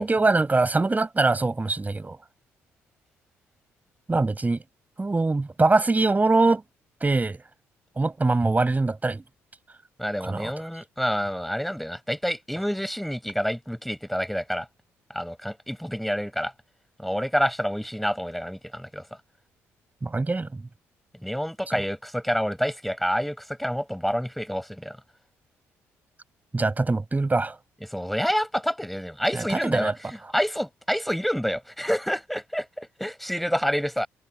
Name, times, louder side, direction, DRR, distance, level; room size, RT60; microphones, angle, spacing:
voice 1, 0.0-2.2 4.1-4.6 5.0-6.6 7.0-7.4 8.0-9.2 10.2-10.5 20.0-20.6 21.7-21.8 26.5-27.6 29.3-29.9, right 3 dB, 25° right, 5.1 m, -23 dB
voice 2, 10.0-14.7 15.1-16.5 17.0-19.0 21.2-25.0 27.8-34.1, equal, ahead, 7.6 m, -28 dB
hypercardioid pair, 50°, 7 cm